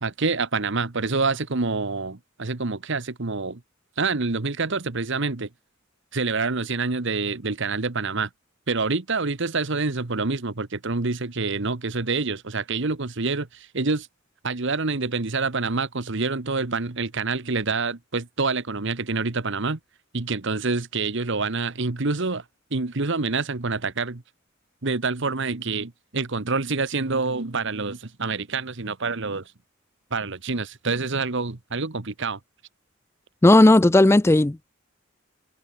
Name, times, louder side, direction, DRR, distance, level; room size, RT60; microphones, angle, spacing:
voice 1, 0.0-3.6 4.0-5.5 6.1-8.3 8.7-14.1 14.4-19.8 20.1-22.4 22.7-24.2 24.8-29.4 30.1-32.4, right 4 dB, 60° right, 1.3 m, -27 dB
voice 2, 33.4-34.7, left 2 dB, 10° left, 0.4 m, -15 dB
head